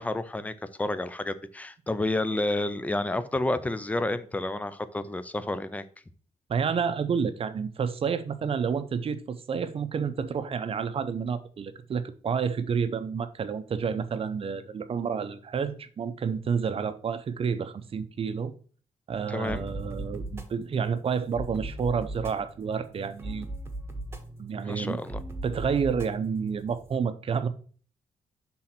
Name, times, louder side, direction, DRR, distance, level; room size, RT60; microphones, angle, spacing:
voice 1, 0.0-5.8 19.3-19.6 24.7-25.2, left 2 dB, 10° left, 0.5 m, -30 dB
voice 2, 6.5-18.5 19.1-23.5 24.4-25.0 25.4-27.5, right 6 dB, 45° right, 0.6 m, -29 dB
sound 1, 19.4-27.0, right 1 dB, 20° right, 1.1 m, -39 dB
5.8 x 3.8 x 5.9 m
cardioid pair, 125°, 13 cm